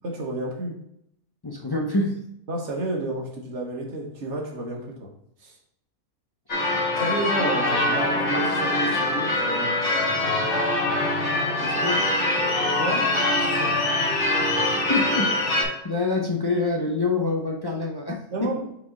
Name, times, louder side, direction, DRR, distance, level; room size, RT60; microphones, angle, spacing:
voice 1, 0.0-0.8 2.5-5.1 5.4-5.5 7.0-9.8 12.8-13.8 18.1-18.6, right 2 dB, 50° right, 1 dB, 1.5 m, -31 dB
voice 2, 1.4-2.3 6.7-6.8 11.6-12.1 14.7-18.5, left 3 dB, 30° left, 0 dB, 0.4 m, -27 dB
Church bell / Car / Alarm, 6.5-15.6, left 2 dB, 50° left, 1.6 m, -23 dB
5.1 x 4.7 x 3.9 m, 0.75 s
omnidirectional pair, 1.5 m